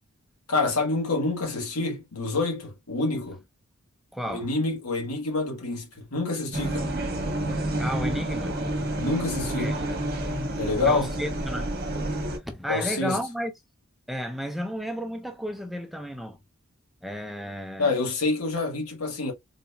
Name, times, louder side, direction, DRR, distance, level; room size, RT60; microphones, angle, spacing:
voice 1, 0.5-3.4 4.3-6.9 9.0-9.7 10.6-11.1 12.7-13.2 17.8-19.3, left 3 dB, 85° left, 1.6 m, -27 dB
voice 2, 4.1-4.5 7.8-8.6 9.6-10.1 10.8-11.7 12.2-13.5 14.1-16.4 17.0-17.9, equal, ahead, 0.5 m, -33 dB
sound 1, 6.5-12.4, right 1 dB, 45° right, 1.1 m, -29 dB
4.1 x 2.7 x 2.3 m
head